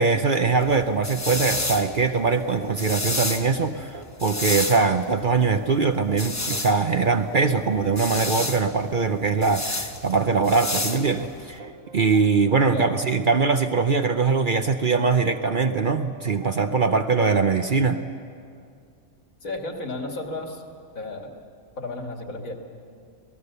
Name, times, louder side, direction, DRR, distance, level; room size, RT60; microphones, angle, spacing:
voice 1, 0.0-11.6 11.9-18.0, right 4 dB, 45° right, 7 dB, 0.7 m, -22 dB
sound 1, 0.6-11.6, left 2 dB, 15° left, 0.8 m, -31 dB
sound 2, 1.8-18.7, right 5 dB, 75° right, 1.6 m, -45 dB
voice 2, 19.4-20.6 20.9-21.3 21.8-22.6, left 2 dB, 75° left, 3 dB, 2.5 m, -33 dB
26.5 x 18.5 x 6.8 m, 2.3 s
omnidirectional pair, 1.4 m